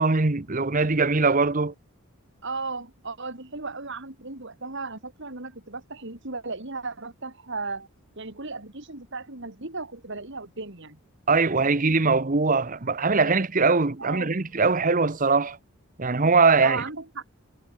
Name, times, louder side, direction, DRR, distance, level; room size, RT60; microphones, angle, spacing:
voice 1, 0.0-1.7 11.3-15.6 16.0-16.8, right 4 dB, 35° right, 0.9 m, -21 dB
voice 2, 2.4-7.9 8.2-11.0 14.0-14.3 16.6-17.2, right 3 dB, 55° right, 2.7 m, -35 dB
head